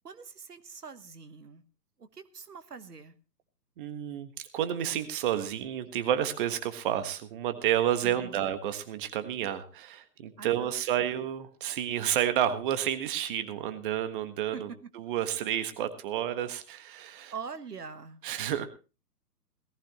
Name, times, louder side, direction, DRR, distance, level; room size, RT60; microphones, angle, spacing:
voice 1, 0.0-1.6 2.0-3.1 8.0-8.5 10.4-10.8 14.5-14.8 17.3-18.2, right 6 dB, 70° right, 11 dB, 1.5 m, -43 dB
voice 2, 3.8-14.7 14.9-17.3 18.2-18.7, right 10 dB, 30° right, 10 dB, 1.4 m, -30 dB
18.5 x 15.0 x 3.0 m, 0.32 s
figure-of-eight pair, 130°, 49 cm